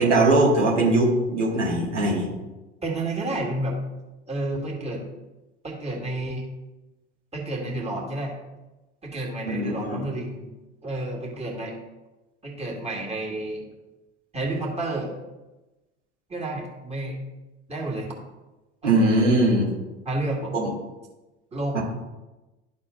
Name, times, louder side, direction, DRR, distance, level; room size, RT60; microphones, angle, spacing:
voice 1, 0.0-2.3 9.5-10.0 18.8-19.7 20.5-20.7 21.7-21.8, right 2 dB, 80° right, -4 dB, 2.1 m, -20 dB
voice 2, 2.8-3.8 4.3-5.0 5.6-6.5 7.3-8.3 9.0-10.5 10.8-11.7 12.4-13.7 14.3-15.1 16.3-17.2 17.7-18.1 18.8-19.0 20.1-20.5 21.5-21.8, right 2 dB, 15° right, -2 dB, 2.4 m, -30 dB
12.5 x 4.2 x 3.8 m, 1.1 s
figure-of-eight pair, 80°, 35 cm